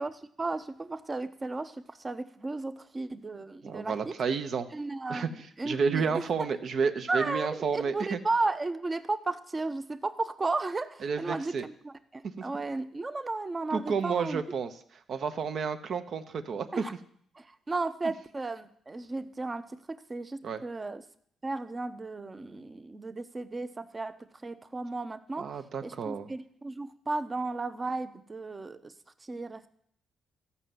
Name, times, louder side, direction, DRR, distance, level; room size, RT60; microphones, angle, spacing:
voice 1, 0.0-4.2 4.7-6.5 7.1-14.4 16.7-16.9 17.3-21.0 21.4-25.5 25.8-28.9 29.2-29.7, right 3 dB, 25° right, 11 dB, 0.8 m, -34 dB
voice 2, 3.6-4.7 5.1-8.2 11.0-11.7 12.4-12.5 13.7-14.7 15.1-16.8 20.4-20.6 25.4-26.3, right 5 dB, 60° right, 9 dB, 1.0 m, -31 dB
14.0 x 5.6 x 7.8 m, 0.65 s
cardioid pair, 90°, 0 cm